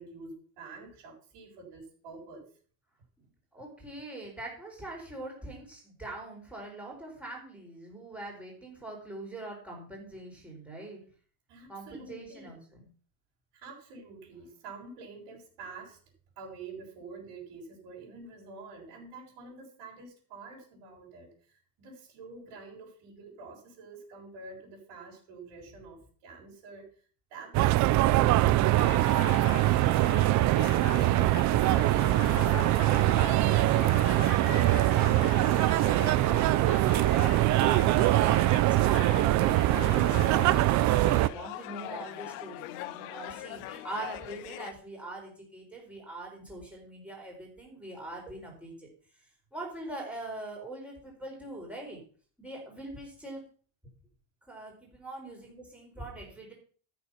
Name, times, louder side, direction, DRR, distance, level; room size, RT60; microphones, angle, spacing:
voice 1, 0.0-2.5 11.5-12.5 13.5-16.0 16.4-27.0 27.3-28.9, right 4 dB, 65° right, -3 dB, 5.9 m, -47 dB
voice 2, 3.5-11.0 11.7-12.9 29.5-48.9 49.5-52.0 52.4-53.4 54.5-56.5, right 2 dB, 5° right, -2 dB, 4.7 m, -43 dB
sound 1, 27.5-41.3, right 16 dB, 40° right, 0.4 m, -23 dB
sound 2, 28.8-44.7, left 15 dB, 90° left, 1.2 m, -41 dB
13.5 x 7.1 x 5.8 m, 0.42 s
cardioid pair, 170°, 48 cm